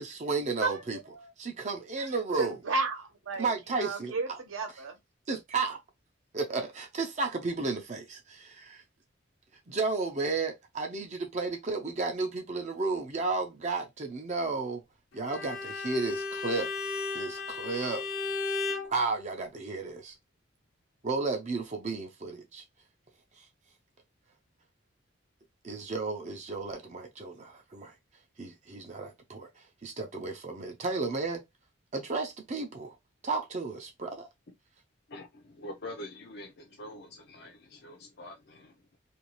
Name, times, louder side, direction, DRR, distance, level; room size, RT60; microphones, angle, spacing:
voice 1, 0.0-1.0 1.4-2.6 3.4-4.4 5.3-5.8 6.3-8.8 9.7-14.8 15.1-16.7 17.1-18.1 18.9-20.1 21.0-22.6 25.6-27.9 28.4-31.4 31.9-32.9 33.2-34.3, right 3 dB, 35° right, 0.5 m, -33 dB
voice 2, 2.4-3.5 3.8-5.0, right 3 dB, 75° right, 0.8 m, -32 dB
Bowed string instrument, 15.2-18.9, left 4 dB, 75° left, 0.8 m, -34 dB
voice 3, 35.1-39.0, left 1 dB, 50° left, 0.5 m, -45 dB
2.6 x 2.3 x 2.9 m
head